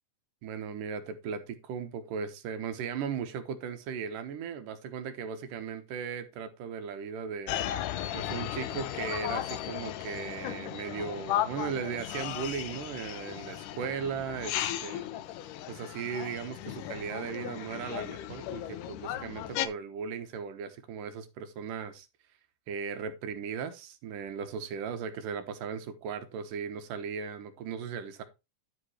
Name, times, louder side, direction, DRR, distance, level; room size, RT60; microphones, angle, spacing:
voice 1, 0.4-7.6 8.1-15.1 15.7-22.1 22.7-28.2, right 6 dB, 80° right, 2.8 m, -37 dB
sound 1, 7.5-19.7, left 12 dB, 80° left, 2.3 m, -36 dB
10.5 x 5.0 x 4.2 m
omnidirectional pair, 3.8 m